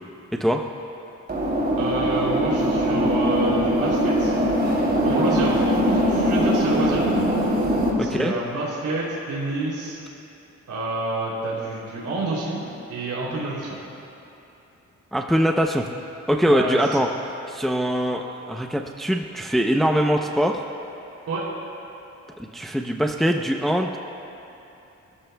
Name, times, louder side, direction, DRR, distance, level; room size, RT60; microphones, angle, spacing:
sound 1, 1.3-7.9, equal, 35° right, 3.3 m, -21 dB
voice 1, 1.8-4.4 5.0-7.0 8.0-10.0 10.7-13.8 16.5-17.0 21.3-21.4, right 2 dB, 90° right, -6 dB, 3.1 m, -28 dB
voice 2, 8.0-8.3 15.1-15.9 16.3-17.1 17.5-20.6 22.4-24.0, equal, ahead, 2 dB, 0.6 m, -22 dB
29.0 x 13.5 x 2.3 m, 2.9 s
cardioid pair, 95°, 29 cm